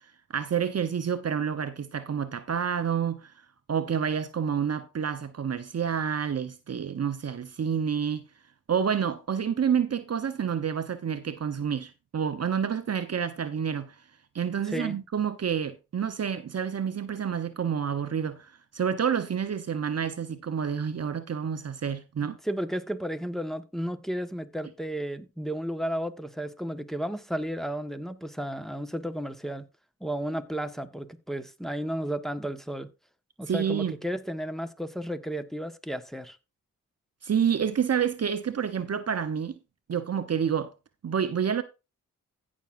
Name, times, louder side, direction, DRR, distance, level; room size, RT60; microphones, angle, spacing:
voice 1, 0.3-3.3 3.7-8.2 8.7-13.9 14.3-22.4 33.5-33.9 37.2-39.5 39.9-40.7 41.0-41.6, right 7 dB, 45° right, 0.9 m, -28 dB
voice 2, 14.6-15.0 22.4-29.6 30.0-32.9 33.4-36.4, equal, ahead, 1.4 m, -33 dB
15.5 x 6.2 x 2.6 m
supercardioid pair, 45°, 34 cm